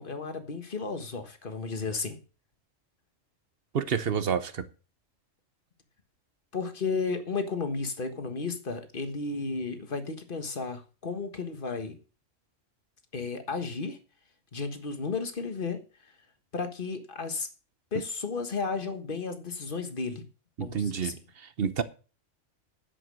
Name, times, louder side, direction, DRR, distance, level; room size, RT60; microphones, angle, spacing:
voice 1, 0.0-2.2 6.5-12.0 13.1-14.0 14.5-15.8 16.5-17.5 17.9-20.2 20.6-21.1, left 4 dB, 40° left, 8 dB, 1.6 m, -33 dB
voice 2, 3.7-4.6 20.6-21.8, right 7 dB, 50° right, 13 dB, 0.9 m, -29 dB
10.5 x 7.7 x 6.2 m, 0.35 s
omnidirectional pair, 1.4 m